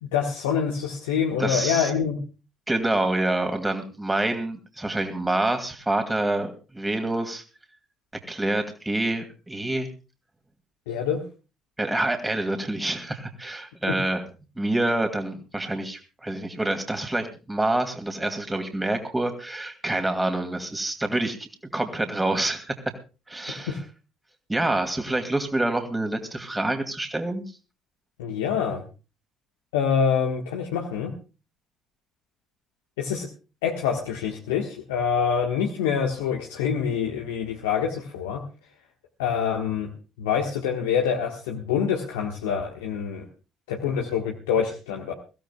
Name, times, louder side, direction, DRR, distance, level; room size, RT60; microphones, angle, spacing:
voice 1, 0.0-2.2 10.9-11.2 13.9-14.0 23.7-23.8 28.2-28.8 29.7-31.1 33.0-33.3 33.6-38.4 39.2-39.9 40.2-43.2 43.7-45.1, left 7 dB, 75° left, 1 dB, 1.5 m, -26 dB
voice 2, 1.4-1.9 2.7-7.4 8.3-9.9 11.8-14.2 14.6-22.8 23.3-23.8 24.5-27.4, right 2 dB, 15° right, 5 dB, 2.5 m, -27 dB
22.5 x 15.5 x 2.3 m, 0.33 s
figure-of-eight pair, 50°, 0 cm